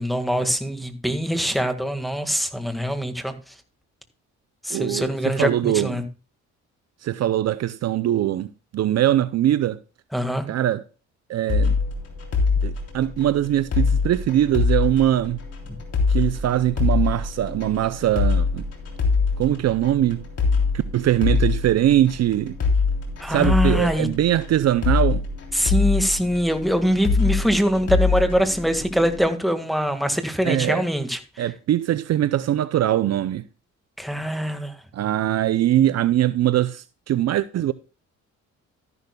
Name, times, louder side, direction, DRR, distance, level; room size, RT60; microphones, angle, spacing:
voice 1, 0.0-3.5 4.6-6.0 10.1-10.5 23.2-24.1 25.5-31.4 34.0-34.7, equal, ahead, 1.8 m, -23 dB
voice 2, 4.7-5.9 7.0-9.8 10.5-10.8 11.3-11.8 12.6-15.4 16.1-18.6 19.4-20.2 20.7-22.6 23.3-25.2 30.4-30.8 31.4-33.4 34.9-37.7, right 12 dB, 60° right, 0.5 m, -22 dB
sound 1, 11.5-29.2, left 4 dB, 55° left, 3.5 m, -24 dB
13.0 x 11.0 x 2.3 m
cardioid pair, 90°, 30 cm